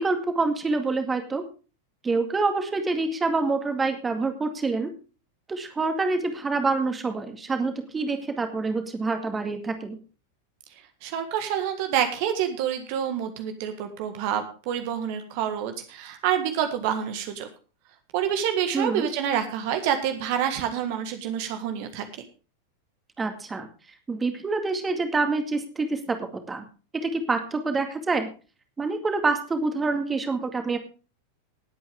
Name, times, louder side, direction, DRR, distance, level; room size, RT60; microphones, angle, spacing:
voice 1, 0.0-1.4 2.0-4.9 5.5-10.0 18.7-19.1 23.2-23.7 24.1-26.2 26.5-26.6 26.9-28.3 28.8-30.8, right 3 dB, 15° right, 6 dB, 2.2 m, -26 dB
voice 2, 11.0-17.5 18.1-22.0, right 9 dB, 45° right, 7 dB, 1.6 m, -27 dB
19.5 x 8.6 x 3.5 m, 0.35 s
figure-of-eight pair, 90°, 0 cm